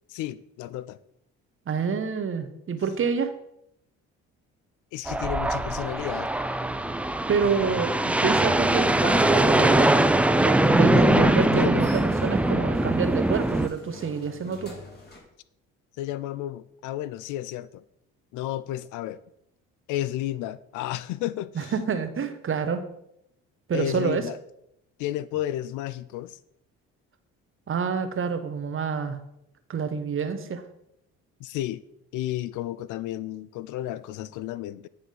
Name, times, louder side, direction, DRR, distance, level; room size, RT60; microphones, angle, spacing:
voice 1, 0.1-1.0 4.9-6.3 10.9-11.9 16.0-17.8 18.3-19.2 19.9-21.7 23.7-24.4 25.0-26.4 31.4-31.8 32.1-34.9, left 13 dB, 70° left, 0.4 m, -32 dB
voice 2, 1.7-3.3 7.3-10.0 10.4-14.7 21.5-22.8 23.7-24.3 27.7-29.2 29.7-30.6, right 6 dB, 40° right, 1.1 m, -28 dB
sound 1, 5.1-13.7, right 1 dB, 5° right, 0.4 m, -22 dB
sound 2, 7.3-15.2, left 2 dB, 30° left, 3.2 m, -48 dB
9.1 x 3.4 x 5.6 m
supercardioid pair, 65°, 32 cm